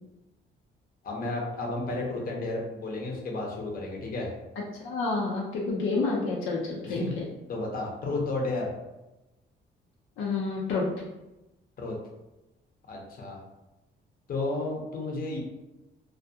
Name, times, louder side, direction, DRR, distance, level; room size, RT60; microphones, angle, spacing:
voice 1, 1.0-4.3 6.8-7.1 7.5-8.7 11.8-12.0 12.9-13.4 14.3-15.4, left 2 dB, 45° left, -1 dB, 0.7 m, -32 dB
voice 2, 4.8-7.2 10.2-10.9, left 3 dB, 80° left, -3 dB, 0.5 m, -29 dB
2.3 x 2.3 x 2.7 m, 0.98 s
cardioid pair, 90°, 20 cm